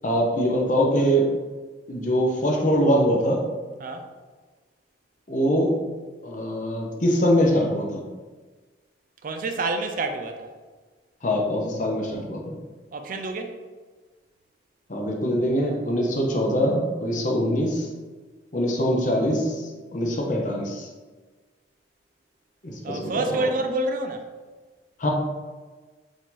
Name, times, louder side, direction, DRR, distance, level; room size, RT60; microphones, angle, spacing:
voice 1, 0.0-1.3 1.9-3.5 5.3-5.8 6.2-8.0 11.2-12.5 14.9-17.9 18.5-20.9 22.6-23.4 25.0-25.1, equal, 45° left, 0 dB, 0.8 m, -23 dB
voice 2, 9.2-10.5 12.9-13.6 22.8-24.3, right 2 dB, 50° right, 6 dB, 0.4 m, -28 dB
4.9 x 2.7 x 3.8 m, 1.4 s
head